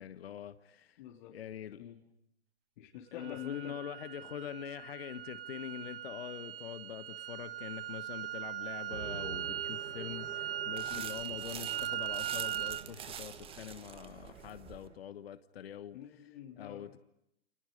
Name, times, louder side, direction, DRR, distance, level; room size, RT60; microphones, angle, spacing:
voice 1, 0.0-1.0 1.3-1.8 3.1-16.0 16.6-17.0, left 9 dB, 60° left, 1.3 m, -44 dB
voice 2, 1.0-1.4 1.8-2.0 2.8-3.8 10.9-11.1 15.9-16.9, left 10 dB, 45° left, 3.3 m, -46 dB
sound 1, 3.2-12.8, right 12 dB, 55° right, 0.9 m, -40 dB
sound 2, 8.9-15.0, right 6 dB, 90° right, 1.7 m, -49 dB
sound 3, 10.8-14.9, right 8 dB, 15° right, 1.5 m, -47 dB
30.0 x 29.5 x 5.4 m
hypercardioid pair, 125°, 34 cm